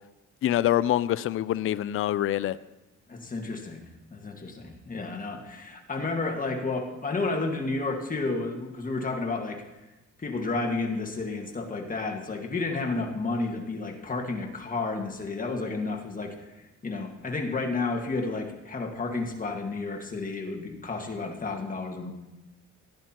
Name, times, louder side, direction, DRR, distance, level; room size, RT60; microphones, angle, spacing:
voice 1, 0.4-2.6, left 12 dB, 45° left, 17 dB, 0.4 m, -25 dB
voice 2, 3.1-3.8 4.1-9.6 10.2-16.5 16.8-22.1, left 3 dB, 25° left, 2 dB, 1.7 m, -31 dB
15.5 x 10.5 x 3.0 m, 1.0 s
cardioid pair, 90°, 30 cm